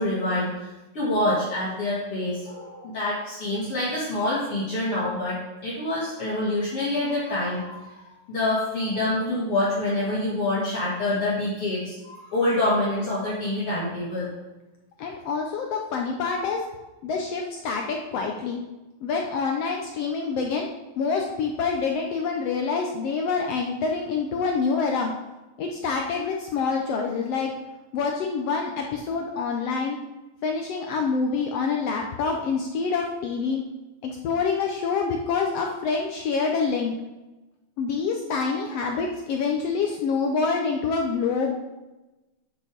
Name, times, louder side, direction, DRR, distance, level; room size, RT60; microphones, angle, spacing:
voice 1, 0.0-5.4 5.6-14.3, left 1 dB, 50° left, -8 dB, 2.8 m, -26 dB
voice 2, 15.0-16.6 17.0-18.6 19.0-20.7 21.0-25.1 25.6-27.5 27.9-30.0 30.4-33.6 34.0-36.9 37.8-41.5, left 5 dB, 75° left, 2 dB, 1.4 m, -26 dB
8.5 x 6.6 x 5.0 m, 1.1 s
omnidirectional pair, 3.7 m